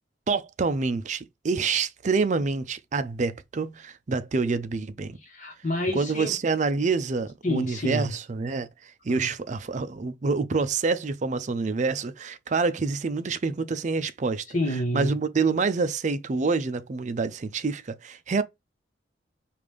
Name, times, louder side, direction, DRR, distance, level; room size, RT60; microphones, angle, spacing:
voice 1, 0.3-5.2 5.9-8.7 9.0-14.4 14.9-18.4, right 4 dB, 40° right, 0.4 m, -27 dB
voice 2, 5.2-6.3 7.4-8.1 9.1-9.3 14.5-15.1, equal, 45° left, 1.2 m, -28 dB
5.0 x 2.5 x 3.4 m
head